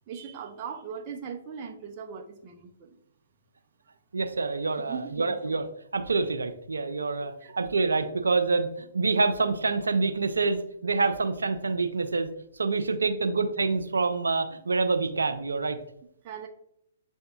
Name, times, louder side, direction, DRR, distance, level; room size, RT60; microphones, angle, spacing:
voice 1, 0.1-2.9 4.9-5.5 7.4-7.6 16.2-16.5, right 6 dB, 35° right, 2 dB, 0.7 m, -39 dB
voice 2, 4.1-5.6 5.9-12.3 12.6-15.8, right 3 dB, 85° right, 7 dB, 0.5 m, -26 dB
7.8 x 2.7 x 2.3 m, 0.74 s
hypercardioid pair, 130°, 0 cm